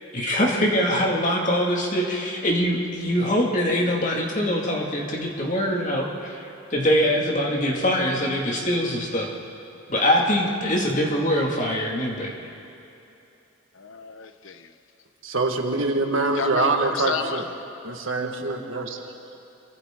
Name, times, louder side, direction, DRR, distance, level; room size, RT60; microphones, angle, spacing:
voice 1, 0.1-9.3 9.9-12.3, equal, 35° left, -1 dB, 2.4 m, -23 dB
voice 2, 13.7-14.7 16.3-17.5, left 5 dB, 65° left, 9 dB, 0.8 m, -32 dB
voice 3, 15.2-17.4 17.8-19.1, right 3 dB, 65° right, 3 dB, 1.8 m, -24 dB
27.5 x 24.0 x 3.9 m, 2.9 s
head